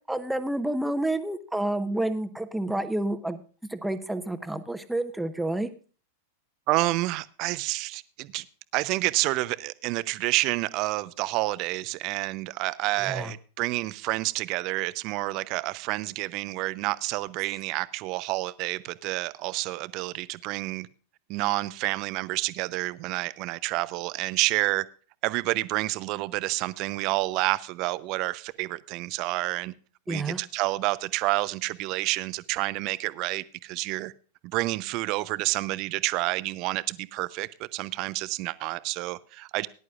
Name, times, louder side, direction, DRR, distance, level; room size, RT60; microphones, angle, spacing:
voice 1, 0.1-3.4 3.7-5.7 13.0-13.3 30.1-30.4, right 1 dB, 5° right, 1.2 m, -29 dB
voice 2, 6.7-8.4 8.7-20.9 21.3-24.9 25.2-29.7 30.1-34.1 34.5-39.7, right 20 dB, 40° right, 0.7 m, -29 dB
19.0 x 11.0 x 2.5 m
figure-of-eight pair, 90°, 0 cm